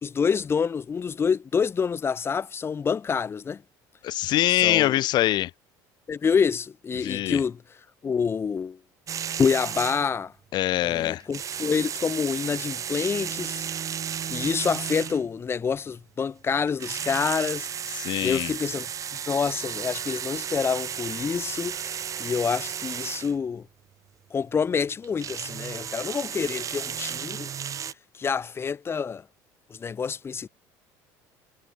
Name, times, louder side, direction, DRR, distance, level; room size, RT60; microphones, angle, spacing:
voice 1, 0.0-3.6 4.6-4.9 6.1-7.6 8.0-8.8 9.4-10.3 10.8-13.6 14.3-17.7 18.0-18.9 19.3-23.7 24.3-27.5 28.1-29.2 29.7-30.5, left 6 dB, 30° left, 0.8 m, -27 dB
voice 2, 4.0-5.5 7.0-7.4 10.5-11.2 17.9-18.5, left 14 dB, 55° left, 0.7 m, -24 dB
sound 1, 9.1-10.2 11.2-15.4 16.7-23.3 25.0-27.9, right 8 dB, 40° right, 1.1 m, -33 dB
supercardioid pair, 100°, 9 cm